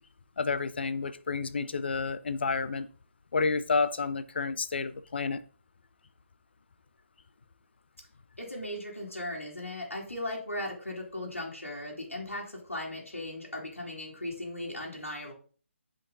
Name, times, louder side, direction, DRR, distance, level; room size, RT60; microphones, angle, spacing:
voice 1, 0.4-2.9 3.3-5.4, left 4 dB, 55° left, 13 dB, 0.7 m, -30 dB
voice 2, 8.4-15.3, left 1 dB, 80° left, -3 dB, 3.0 m, -37 dB
8.9 x 5.3 x 3.9 m, 0.41 s
figure-of-eight pair, 145°, 7 cm